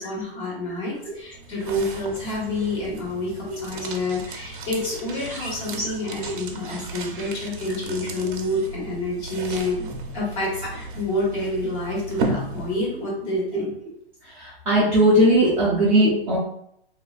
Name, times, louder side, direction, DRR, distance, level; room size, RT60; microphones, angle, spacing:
voice 1, 0.0-9.9 10.1-13.7, left 1 dB, 30° left, -4 dB, 1.1 m, -28 dB
sound 1, 1.0-13.1, right 2 dB, 55° right, 0.6 m, -35 dB
voice 2, 14.3-16.4, right 1 dB, 5° right, -13 dB, 0.4 m, -18 dB
3.1 x 2.4 x 2.4 m, 0.72 s
hypercardioid pair, 160°, 31 cm